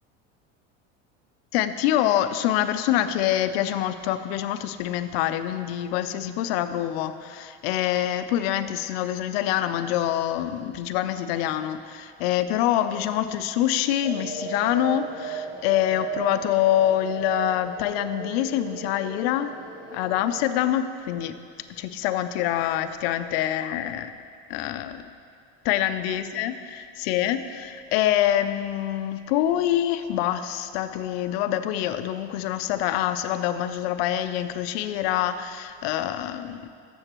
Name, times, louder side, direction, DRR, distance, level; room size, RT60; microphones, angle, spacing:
voice 1, 1.5-19.5 19.9-21.4 21.8-24.1 24.5-25.0 25.6-36.7, left 12 dB, 80° left, 10 dB, 0.5 m, -25 dB
sound 1, 14.0-20.6, right 5 dB, 15° right, 0.9 m, -36 dB
13.0 x 7.0 x 3.0 m, 2.3 s
cardioid pair, 175°, 30 cm